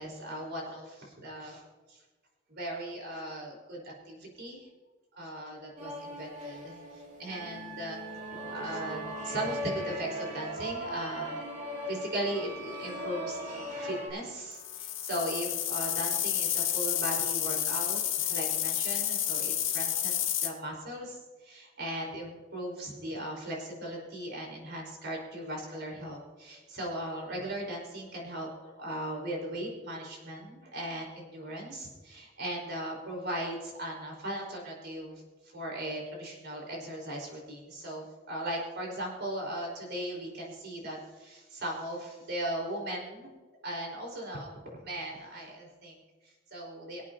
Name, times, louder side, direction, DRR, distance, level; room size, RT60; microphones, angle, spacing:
voice 1, 0.0-1.6 1.9-2.0 2.5-4.7 5.2-8.0 8.5-11.4 11.9-43.3 43.6-47.0, right 1 dB, 60° right, -1 dB, 4.8 m, -38 dB
sound 1, 5.8-14.1, equal, 40° right, 2.8 m, -38 dB
sound 2, 14.5-20.5, left 11 dB, 80° left, 2.2 m, -30 dB
25.5 x 8.5 x 2.9 m, 1.3 s
head